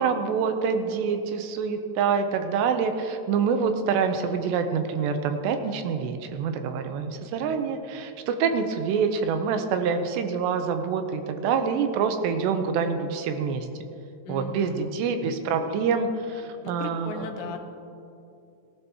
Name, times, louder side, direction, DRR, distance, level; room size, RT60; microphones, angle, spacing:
voice 1, 0.0-13.7 14.3-17.6, right 6 dB, 85° right, 7 dB, 2.8 m, -26 dB
voice 2, 14.3-14.9 16.6-17.6, left 5 dB, 85° left, 5 dB, 3.0 m, -37 dB
18.0 x 12.5 x 3.0 m, 2.7 s
omnidirectional pair, 5.1 m